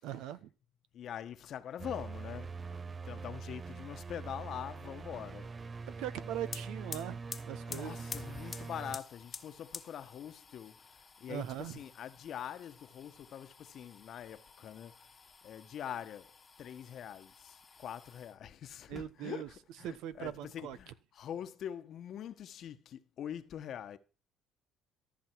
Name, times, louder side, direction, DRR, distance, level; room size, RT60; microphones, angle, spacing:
voice 1, 0.0-0.5 5.9-7.2 7.5-8.0 11.3-11.8 18.9-19.5 19.8-20.8, right 11 dB, 75° right, 1.0 m, -40 dB
voice 2, 0.9-5.5 7.6-15.1 15.4-24.0, left 9 dB, 60° left, 1.1 m, -44 dB
sound 1, 1.8-9.0, right 4 dB, 30° right, 0.6 m, -44 dB
sound 2, 6.1-6.2 6.4-18.4 18.8-19.6 19.9-20.9, left 5 dB, 30° left, 1.2 m, -50 dB
14.0 x 6.2 x 4.6 m
supercardioid pair, 80°, 0 cm